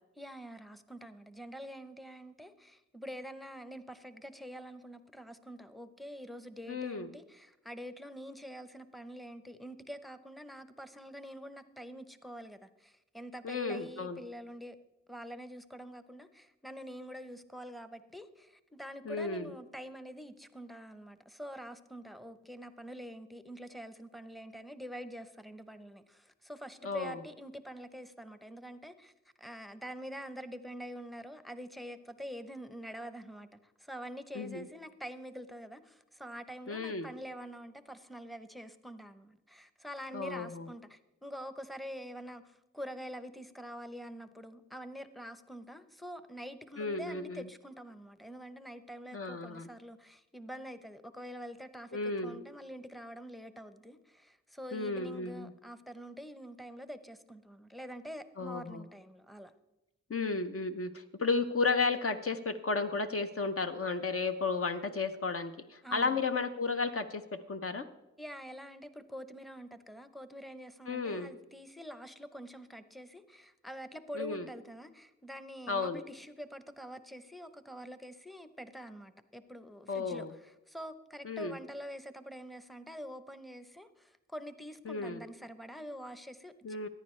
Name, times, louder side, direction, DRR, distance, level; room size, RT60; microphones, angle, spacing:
voice 1, 0.2-14.8 15.1-29.1 29.4-59.5 65.8-66.2 68.2-86.9, equal, ahead, 11 dB, 0.7 m, -46 dB
voice 2, 6.7-7.1 13.4-14.2 19.0-19.5 26.8-27.2 34.3-34.6 36.7-37.1 40.1-40.7 46.8-47.5 49.1-49.7 51.9-52.4 54.7-55.5 58.4-58.8 60.1-67.9 70.9-71.3 74.1-74.5 75.7-76.0 79.9-80.3 81.2-81.6 84.9-85.2 86.6-86.9, left 4 dB, 50° left, 8 dB, 0.7 m, -33 dB
14.0 x 9.9 x 3.2 m, 0.97 s
cardioid pair, 45°, 29 cm